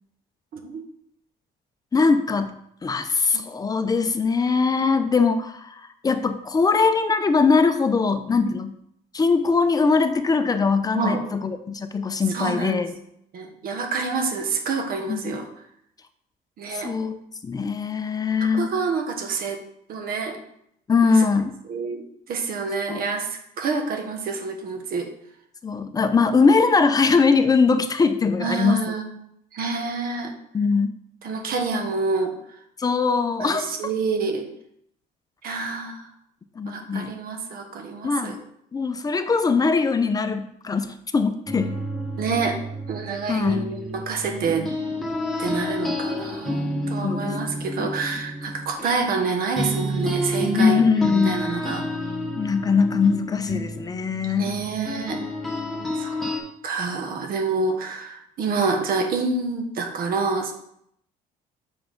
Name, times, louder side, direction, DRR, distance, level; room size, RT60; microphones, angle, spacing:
voice 1, 0.5-0.8 3.3-3.4 8.4-8.6 10.9-11.2 12.3-12.8 13.3-15.5 16.6-16.9 18.5-19.6 19.9-20.4 21.0-21.2 21.7-25.1 28.4-29.1 29.5-30.3 31.2-32.3 33.4-34.5 35.4-36.1 36.7-38.4 42.2-42.6 42.9-44.7 45.4-50.8 51.2-51.8 54.3-55.2 56.0-56.2 56.6-60.5, right 4 dB, 60° right, 4 dB, 1.3 m, -27 dB
voice 2, 1.9-2.5 2.8-8.7 9.1-12.9 15.1-15.4 16.7-18.7 20.9-21.5 22.9-23.0 25.6-28.9 30.5-30.9 32.8-33.9 36.6-37.1 38.0-38.4 38.7-41.8 43.3-43.7 47.0-47.4 47.8-47.9 50.5-51.5 52.4-54.5, left 4 dB, 20° left, 10 dB, 0.6 m, -21 dB
sound 1, 41.5-49.3 49.5-56.4, equal, ahead, 1.4 m, -30 dB
6.7 x 4.8 x 3.8 m, 0.73 s
cardioid pair, 110°, 17 cm